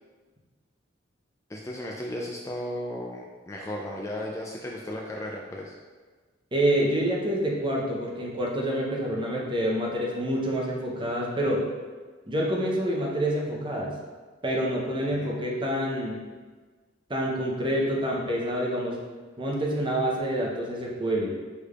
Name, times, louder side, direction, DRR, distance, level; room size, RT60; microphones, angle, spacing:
voice 1, 1.5-5.7 15.1-15.3, left 1 dB, 15° left, -2 dB, 0.3 m, -35 dB
voice 2, 6.5-11.6 12.3-13.9 14.4-16.2 17.1-19.0 19.4-21.3, right 1 dB, 25° right, -2 dB, 0.7 m, -27 dB
6.3 x 3.3 x 2.4 m, 1.4 s
head